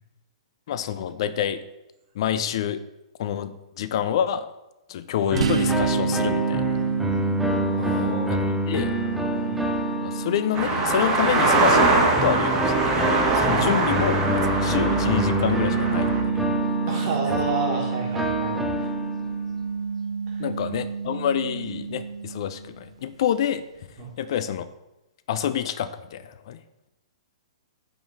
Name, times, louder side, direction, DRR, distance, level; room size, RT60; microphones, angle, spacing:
voice 1, 0.7-1.6 2.2-2.8 3.2-3.5 3.8-4.5 4.9-6.8 8.3-8.4 8.7-8.9 10.0-16.1 16.4-16.5 20.4-23.6 24.2-24.6 25.3-26.6, left 9 dB, 55° left, 12 dB, 0.4 m, -27 dB
sound 1, 5.3-11.1 12.2-19.6, equal, 5° right, 0.5 m, -28 dB
sound 2, 5.4-22.9, right 5 dB, 70° right, 0.4 m, -29 dB
voice 2, 7.7-8.3 9.4-9.5 13.6-13.7 16.9-18.9 20.3-20.4 24.0-24.1, right 4 dB, 40° right, 0 dB, 1.4 m, -31 dB
sound 3, 10.5-16.2, right 3 dB, 25° right, 1.1 m, -22 dB
5.0 x 3.9 x 4.8 m, 0.96 s
hypercardioid pair, 120°, 3 cm